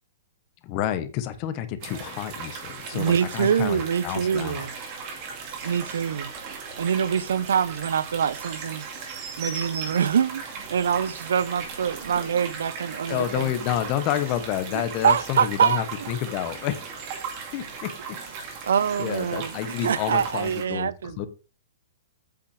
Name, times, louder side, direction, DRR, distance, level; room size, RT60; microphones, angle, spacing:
voice 1, 0.6-4.7 13.1-16.9 17.5-17.9 18.6-18.7 19.0-21.3, left 11 dB, 25° left, 1.0 m, -29 dB
sound 1, 1.8-20.6, right 5 dB, 30° right, 2.2 m, -37 dB
voice 2, 2.9-4.7 5.6-6.3 6.8-8.8 9.4-10.4 10.7-13.5 15.0-15.9 18.7-21.3, right 7 dB, 80° right, 0.6 m, -24 dB
8.7 x 5.8 x 4.9 m
hypercardioid pair, 175°, 0 cm